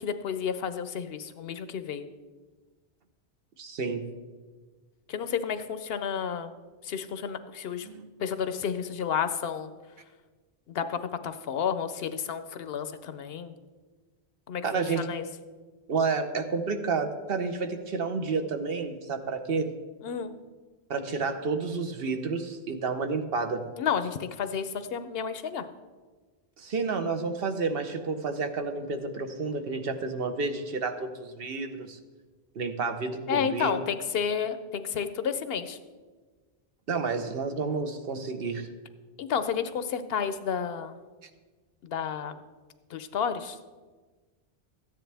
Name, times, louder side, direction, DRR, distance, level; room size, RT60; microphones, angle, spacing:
voice 1, 0.0-2.1 5.1-6.5 6.8-7.9 8.2-9.7 10.7-13.5 14.5-15.2 20.0-20.3 23.8-25.7 33.3-35.8 39.2-40.9 41.8-42.4 42.9-43.6, left 7 dB, 65° left, 11 dB, 0.8 m, -31 dB
voice 2, 3.6-4.1 7.8-8.1 14.6-15.1 15.9-19.7 20.9-23.6 26.6-32.0 32.6-33.8 36.9-38.7, right 4 dB, 60° right, 7 dB, 1.0 m, -30 dB
13.5 x 9.7 x 3.4 m, 1.4 s
omnidirectional pair, 1.1 m